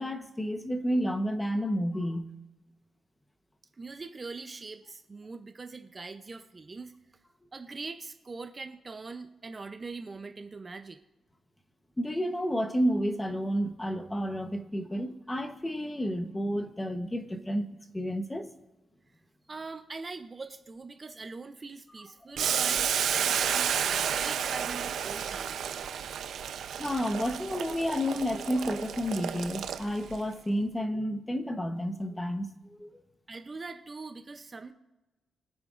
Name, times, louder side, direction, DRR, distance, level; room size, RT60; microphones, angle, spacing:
voice 1, 0.0-2.3 12.0-18.5 22.0-22.1 25.9-26.0 26.8-32.5 32.8-33.0, equal, 10° left, 1.0 m, -31 dB
voice 2, 3.8-7.0 7.5-11.0 19.5-25.6 33.3-34.7, right 3 dB, 30° right, 0.6 m, -42 dB
Boiling, 22.4-30.2, right 8 dB, 75° right, 0.6 m, -31 dB
23.0 x 8.7 x 2.5 m
cardioid pair, 115°, 0 cm